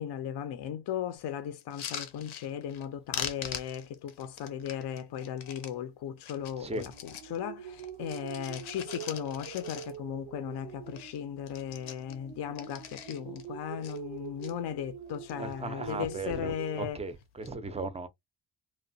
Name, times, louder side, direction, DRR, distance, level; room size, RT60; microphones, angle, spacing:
voice 1, 0.0-17.0, left 9 dB, 60° left, 0.5 m, -37 dB
sound 1, 1.6-2.9 3.1-5.7 6.2-7.4 7.7-10.2 10.5-10.6 10.9-11.2 11.4-13.5 13.8-14.5 15.1-15.6 15.8-16.4 17.2-17.5, left 8 dB, 85° left, 0.8 m, -42 dB
sound 2, 6.4-16.9, right 9 dB, 85° right, 0.5 m, -45 dB
voice 2, 6.6-6.9 15.4-18.1, right 3 dB, 15° right, 0.4 m, -37 dB
2.9 x 2.0 x 2.6 m
cardioid pair, 100°, 47 cm